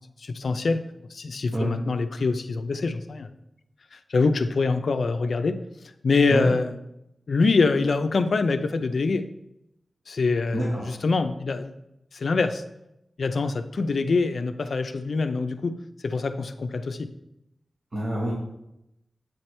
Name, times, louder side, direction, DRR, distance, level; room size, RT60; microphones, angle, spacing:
voice 1, 0.2-0.9 1.1-3.3 3.9-5.6 6.0-6.8 7.3-9.2 10.1-11.7 12.1-12.6 13.2-15.7 16.0-17.1, left 4 dB, 75° left, 9 dB, 0.4 m, -24 dB
voice 2, 17.9-18.3, right 1 dB, 40° right, -5 dB, 1.4 m, -27 dB
7.7 x 4.4 x 3.3 m, 0.86 s
wide cardioid pair, 105°, 0 cm